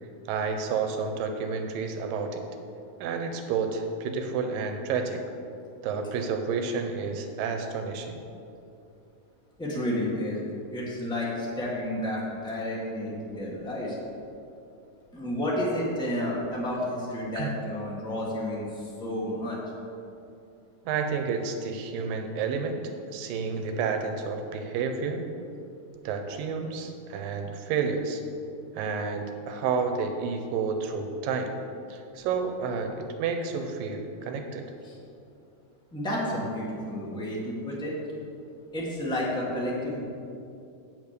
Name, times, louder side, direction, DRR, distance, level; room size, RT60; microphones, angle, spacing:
voice 1, 0.3-2.4 3.0-5.2 5.8-8.2 17.4-17.5 20.9-22.8 23.1-25.3 26.0-28.2 28.7-31.5 31.9-34.7, right 5 dB, 90° right, 5 dB, 2.5 m, -30 dB
voice 2, 9.6-14.0 15.1-19.6 34.8-35.0 35.9-37.9 38.7-40.0, left 1 dB, 5° left, -5 dB, 0.4 m, -31 dB
8.4 x 7.2 x 6.7 m, 2.6 s
omnidirectional pair, 3.9 m